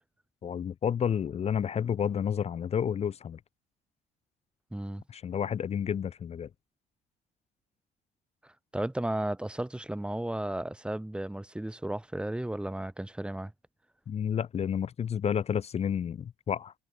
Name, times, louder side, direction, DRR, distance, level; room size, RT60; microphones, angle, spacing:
voice 1, 0.4-3.4 5.1-6.5 14.1-16.7, left 8 dB, 40° left, 0.8 m, -30 dB
voice 2, 4.7-5.0 8.4-13.5, right 1 dB, 5° right, 1.3 m, -34 dB
cardioid pair, 110°, 17 cm